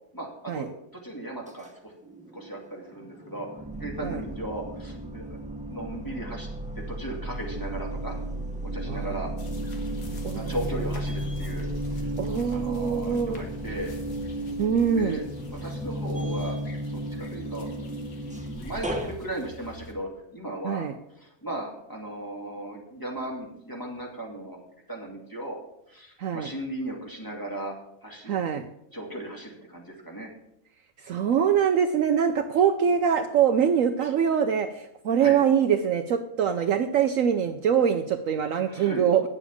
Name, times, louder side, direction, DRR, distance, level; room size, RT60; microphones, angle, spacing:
voice 1, 0.1-0.7 1.0-1.9 2.3-3.5 3.8-6.5 6.8-8.2 8.6-9.3 10.3-11.7 12.0-12.1 12.5-13.9 14.9-15.2 15.5-16.6 16.8-17.7 18.6-20.9 21.2-24.6 24.9-25.6 25.9-27.7 28.0-28.3 28.9-30.3 34.0-34.1 35.2-35.4 38.6-39.0, right 1 dB, 15° left, -1 dB, 2.4 m, -36 dB
sound 1, 2.1-2.9 3.2-19.1, right 1 dB, 5° right, 0.6 m, -34 dB
sound 2, 9.4-19.9, left 3 dB, 65° left, 1.9 m, -47 dB
voice 2, 12.2-13.4 14.6-15.2 20.6-20.9 26.2-26.5 28.3-28.7 31.1-39.2, right 8 dB, 65° right, 8 dB, 1.0 m, -24 dB
9.6 x 7.1 x 7.1 m, 0.80 s
omnidirectional pair, 1.6 m